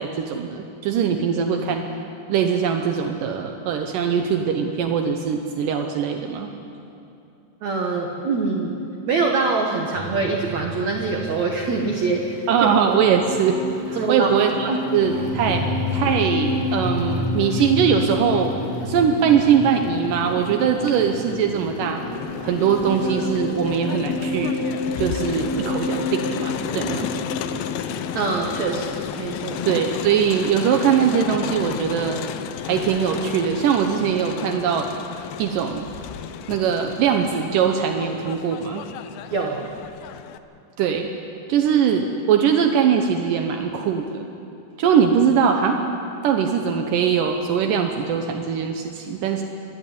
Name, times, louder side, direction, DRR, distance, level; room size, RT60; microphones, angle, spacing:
voice 1, 0.0-1.9 2.3-6.5 12.5-13.6 13.9-15.6 15.9-18.5 18.8-22.0 22.4-24.6 25.0-27.1 29.7-32.2 32.6-34.9 35.4-35.9 36.5-38.8 40.8-41.1 41.5-44.2 44.8-45.8 46.2-49.4, right 7 dB, 80° right, 4 dB, 1.9 m, -21 dB
voice 2, 7.6-8.7 9.1-12.5 13.9-14.3 14.7-14.8 28.1-29.6 39.3-39.7, right 4 dB, 65° right, 1 dB, 1.9 m, -24 dB
sound 1, 9.9-28.8, left 2 dB, 40° right, 1.0 m, -30 dB
sound 2, 11.6-30.0, left 4 dB, 65° left, 2.8 m, -37 dB
Crowd, 22.1-40.4, left 9 dB, 85° left, 2.0 m, -33 dB
27.0 x 11.0 x 10.0 m, 2.7 s
omnidirectional pair, 5.1 m